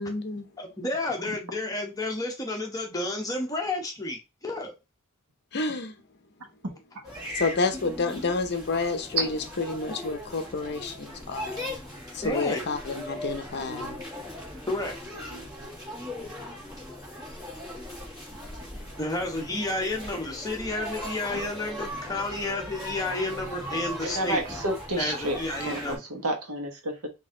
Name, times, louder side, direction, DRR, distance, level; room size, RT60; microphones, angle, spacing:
voice 1, 0.0-0.5 5.5-5.9 7.3-11.7 12.1-14.0, left 3 dB, 50° left, 0.7 m, -29 dB
voice 2, 0.6-4.7 12.2-12.6 14.7-15.0 18.3-24.4 25.0-26.0, left 2 dB, 15° left, 1.0 m, -31 dB
sound 1, 7.0-26.0, left 1 dB, 15° right, 1.8 m, -39 dB
voice 3, 15.3-15.7 21.3-21.4 24.0-25.4 25.6-27.1, right 1 dB, 75° right, 1.2 m, -30 dB
4.0 x 2.7 x 3.7 m
head